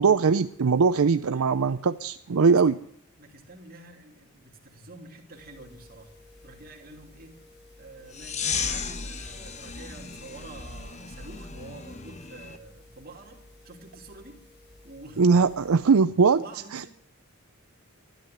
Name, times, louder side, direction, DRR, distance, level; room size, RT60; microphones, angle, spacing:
voice 1, 0.0-2.8 15.2-16.4 16.7-16.9, right 5 dB, 80° right, 11 dB, 0.5 m, -21 dB
voice 2, 0.9-1.7 2.4-2.8 3.2-6.1 6.4-7.4 7.8-13.4 13.6-14.4 14.8-15.4 15.9-16.9, right 2 dB, 45° right, 2 dB, 2.8 m, -47 dB
sound 1, 5.3-15.9, left 1 dB, 50° left, 3.9 m, -54 dB
sound 2, 8.1-12.6, left 5 dB, 30° left, 1.1 m, -35 dB
13.0 x 10.5 x 9.3 m, 0.68 s
head